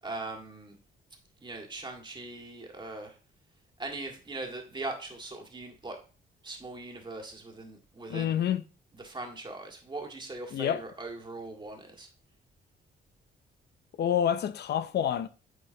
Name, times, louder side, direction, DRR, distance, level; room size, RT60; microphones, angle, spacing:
voice 1, 0.0-0.8 1.4-3.2 3.8-6.0 6.4-8.4 8.9-12.1, right 2 dB, 20° right, 1.7 m, -40 dB
voice 2, 8.1-8.6 10.5-10.8 14.0-15.3, left 9 dB, 55° left, 0.5 m, -27 dB
8.9 x 4.3 x 2.7 m
cardioid pair, 90°, 20 cm